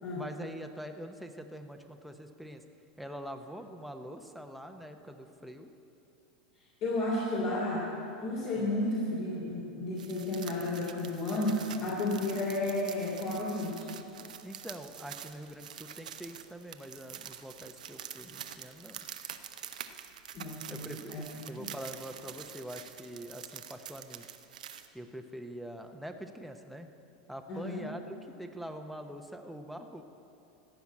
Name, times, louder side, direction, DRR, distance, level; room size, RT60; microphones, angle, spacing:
voice 1, 0.1-2.6 3.0-5.7 8.6-8.7 14.4-19.0 20.7-24.3 24.9-26.9 27.3-30.0, equal, ahead, 4 dB, 0.9 m, -44 dB
voice 2, 6.8-7.9 8.2-13.9 20.3-21.3 21.5-21.7 27.5-27.9, left 2 dB, 50° left, -5 dB, 3.0 m, -32 dB
sound 1, 10.0-24.9, right 9 dB, 85° right, 0.7 m, -46 dB
15.0 x 5.8 x 8.6 m, 2.9 s
hypercardioid pair, 100°, 4 cm